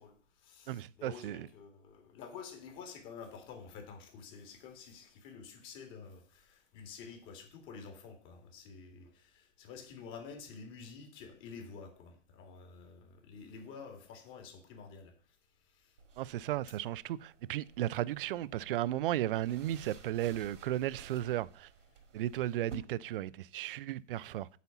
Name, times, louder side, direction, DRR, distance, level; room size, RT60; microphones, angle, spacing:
voice 1, 0.0-15.1 15.6-16.0 21.9-22.0, left 5 dB, 35° left, 2.3 m, -50 dB
voice 2, 0.7-1.5 16.2-21.7 22.1-24.5, right 13 dB, 50° right, 0.4 m, -35 dB
sound 1, 16.0-22.7, right 6 dB, 80° right, 2.0 m, -55 dB
8.2 x 4.2 x 7.1 m
hypercardioid pair, 130°, 37 cm